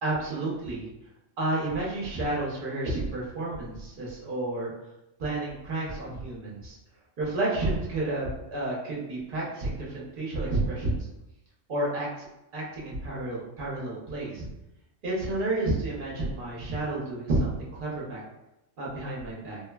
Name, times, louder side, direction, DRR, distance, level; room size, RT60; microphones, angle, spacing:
voice 1, 0.0-0.9 1.4-4.7 5.2-6.8 7.2-11.1 11.7-12.3 12.5-14.5 15.0-18.2 18.8-19.6, right 2 dB, 50° right, -4 dB, 0.8 m, -30 dB
3.1 x 2.1 x 2.2 m, 0.93 s
omnidirectional pair, 1.3 m